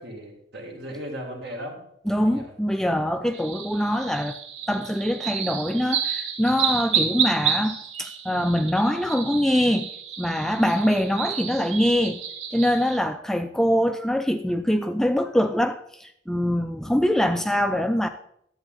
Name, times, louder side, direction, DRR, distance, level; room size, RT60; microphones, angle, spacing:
voice 1, 0.0-1.9 2.3-2.5, equal, 60° right, 0 dB, 2.0 m, -37 dB
voice 2, 2.1-4.4 4.7-9.9 10.2-12.2 12.5-18.1, equal, ahead, 8 dB, 0.3 m, -23 dB
sound 1, 3.3-13.0, right 7 dB, 80° right, 0.9 m, -30 dB
11.0 x 8.0 x 3.9 m, 0.73 s
head